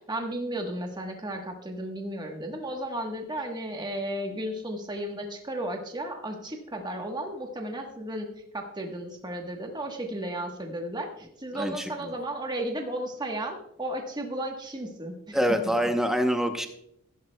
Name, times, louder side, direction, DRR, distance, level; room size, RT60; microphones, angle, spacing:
voice 1, 0.1-8.3 8.5-15.4, right 1 dB, 20° right, 3 dB, 1.1 m, -34 dB
voice 2, 11.5-12.1 15.3-16.7, equal, ahead, 6 dB, 0.7 m, -26 dB
15.0 x 11.0 x 2.2 m, 0.76 s
head